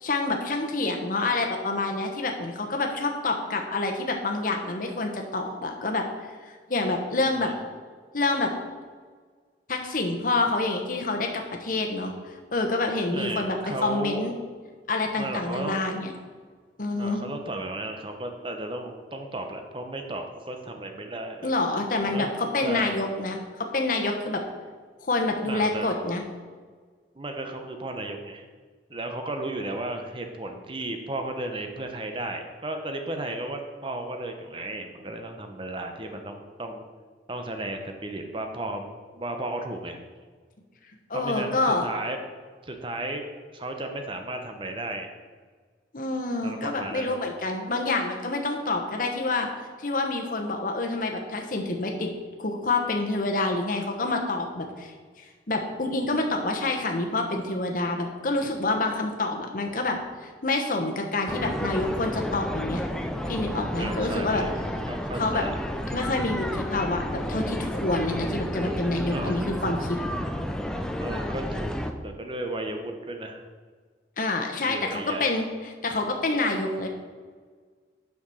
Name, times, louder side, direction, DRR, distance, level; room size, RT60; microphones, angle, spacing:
voice 1, 0.0-7.5 8.1-8.5 9.7-14.3 14.9-16.1 16.8-17.2 21.4-24.4 25.0-26.2 41.1-41.8 45.9-49.5 49.8-52.1 52.4-62.8 63.3-64.5 65.2-65.5 65.9-70.0 74.2-76.9, left 2 dB, 50° left, 3 dB, 1.1 m, -27 dB
voice 2, 13.1-14.2 15.2-15.8 17.0-21.5 22.1-22.9 25.4-25.9 27.2-28.4 28.9-36.8 37.3-40.0 41.1-42.2 42.6-43.3 43.5-45.1 46.4-47.2 63.8-64.5 64.9-65.6 69.1-69.5 71.0-73.4 74.6-75.4, right 2 dB, 30° right, 5 dB, 0.8 m, -34 dB
sound 1, 61.3-71.9, equal, 5° left, 0.4 m, -31 dB
7.0 x 6.0 x 6.3 m, 1.5 s
head